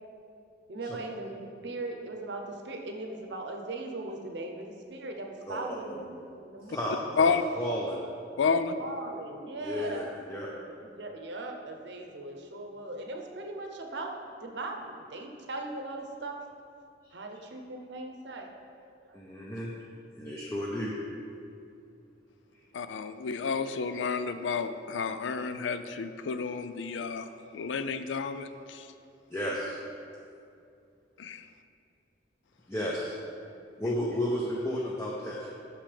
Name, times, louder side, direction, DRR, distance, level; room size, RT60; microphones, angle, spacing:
voice 1, 0.7-6.9 8.8-14.1 14.4-16.4 17.1-18.5 18.8-19.2, right 2 dB, 70° right, 3 dB, 0.8 m, -39 dB
voice 2, 5.5-6.0 6.7-8.0 9.6-10.5 19.1-19.7 20.2-20.9 29.3-29.8 32.7-33.1 33.8-35.5, equal, 15° left, -5 dB, 0.6 m, -33 dB
voice 3, 8.4-8.8 22.7-27.3 27.5-28.9 31.2-31.5, left 5 dB, 90° left, 10 dB, 0.4 m, -30 dB
9.0 x 6.4 x 3.4 m, 2.5 s
head